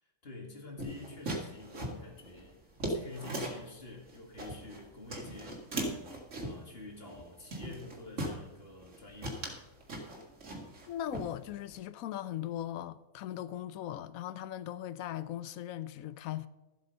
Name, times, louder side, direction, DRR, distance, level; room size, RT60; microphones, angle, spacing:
voice 1, 0.0-5.6 6.4-9.5, left 2 dB, 40° left, 2.3 m, -48 dB
sound 1, 0.8-3.7 4.1-4.8 5.1-6.7 7.1-7.2 7.5-8.4 8.8-9.0 9.2-10.9 11.1-11.7, right 1 dB, 55° right, 2.2 m, -38 dB
voice 2, 10.9-16.5, left 12 dB, 75° left, 1.0 m, -39 dB
13.0 x 8.0 x 5.4 m
omnidirectional pair, 1.5 m